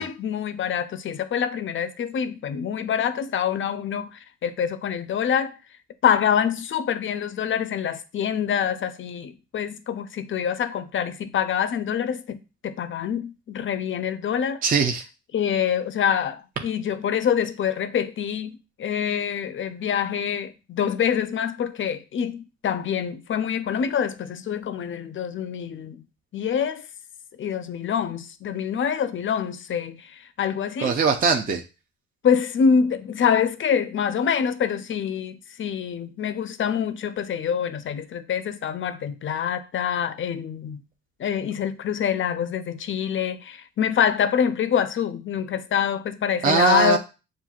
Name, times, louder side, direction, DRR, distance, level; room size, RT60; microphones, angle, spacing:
voice 1, 0.0-5.5 6.0-14.6 15.3-18.5 18.8-26.0 26.3-26.9 27.4-31.0 32.2-40.8 41.2-47.0, left 8 dB, 40° left, 0.5 m, -25 dB
voice 2, 14.6-15.0 30.8-31.6 46.4-47.0, right 5 dB, 30° right, 0.5 m, -20 dB
7.2 x 2.5 x 2.4 m
cardioid pair, 90°, 30 cm